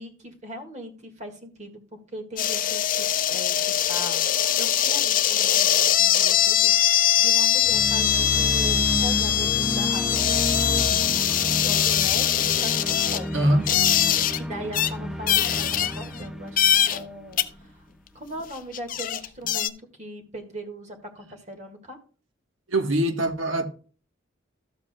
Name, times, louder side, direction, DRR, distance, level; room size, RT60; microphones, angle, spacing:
voice 1, 0.0-4.2 4.6-10.3 10.5-13.5 14.4-16.6 16.9-17.8 18.1-22.0, equal, 35° right, 1.8 m, -39 dB
sound 1, 2.4-14.4 14.7-14.9 15.3-16.2 16.6-17.0 17.4-17.5 18.4-18.5 18.7-19.7, left 11 dB, 45° left, 0.5 m, -22 dB
sound 2, 7.6-17.7, equal, 5° right, 0.4 m, -31 dB
voice 2, 13.3-13.7 22.7-23.7, right 1 dB, 75° right, 1.2 m, -22 dB
13.0 x 7.5 x 2.2 m
head